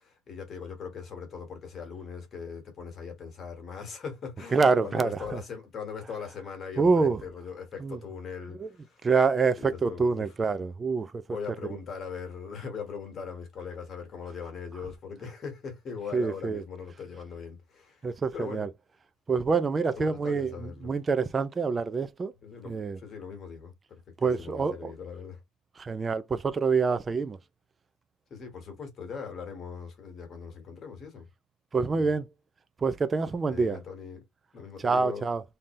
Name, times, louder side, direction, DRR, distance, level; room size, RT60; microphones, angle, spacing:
voice 1, 0.0-9.1 9.6-10.2 11.3-18.7 19.9-21.0 22.4-25.4 28.3-31.3 31.9-32.1 33.5-34.2 34.5-35.3, left 6 dB, 35° left, 1.5 m, -40 dB
voice 2, 4.5-5.4 6.8-7.2 7.8-8.0 8.6-8.7 9.0-11.4 16.1-16.6 18.0-18.7 19.3-22.3 22.6-23.0 24.2-24.9 25.8-27.4 31.7-32.2 32.8-33.8 34.8-35.4, right 4 dB, 20° right, 0.3 m, -26 dB
3.7 x 2.7 x 3.1 m
cardioid pair, 155°, 0 cm